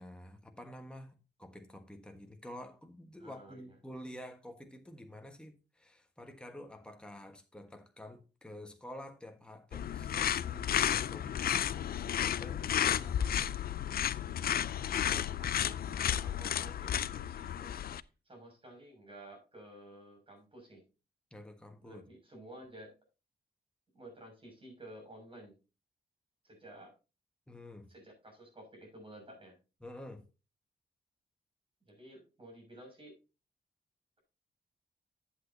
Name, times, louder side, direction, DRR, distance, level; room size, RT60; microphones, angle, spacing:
voice 1, 0.0-13.5 17.5-17.8 21.3-22.0 27.5-27.9 29.8-30.3, left 1 dB, 5° left, 1.4 m, -49 dB
voice 2, 3.2-3.7 15.1-17.5 18.2-20.8 21.8-22.9 23.9-25.6 26.4-26.9 27.9-29.5 31.9-33.1, right 1 dB, 30° right, 6.2 m, -52 dB
sound 1, 9.7-18.0, left 10 dB, 60° left, 0.4 m, -32 dB
11.5 x 8.3 x 2.7 m
cardioid pair, 100°, 17 cm